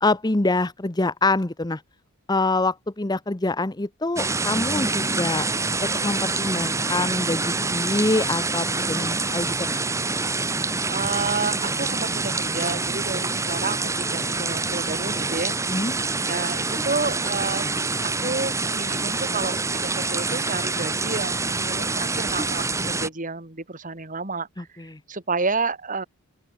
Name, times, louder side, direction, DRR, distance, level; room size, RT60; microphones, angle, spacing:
voice 1, 0.0-1.8 2.3-5.5 5.8-9.8 15.7-15.9 24.6-25.0, left 2 dB, 20° left, 0.8 m, -25 dB
sound 1, 4.2-23.1, right 3 dB, 15° right, 1.4 m, -26 dB
voice 2, 10.9-15.5 16.3-17.6 18.0-24.7 25.1-26.1, right 4 dB, 35° right, 2.4 m, -30 dB
open air
head